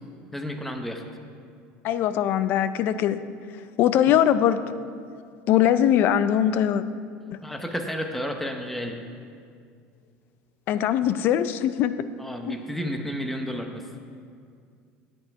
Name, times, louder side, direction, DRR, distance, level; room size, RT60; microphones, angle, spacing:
voice 1, 0.3-1.0 4.1-4.2 7.4-9.1 12.2-13.9, equal, 5° left, 4 dB, 0.8 m, -32 dB
voice 2, 1.8-3.2 3.8-4.7 5.5-6.8 10.7-12.1 12.5-12.6, left 10 dB, 50° left, 14 dB, 0.4 m, -21 dB
9.7 x 7.8 x 4.7 m, 2.3 s
supercardioid pair, 130°, 4 cm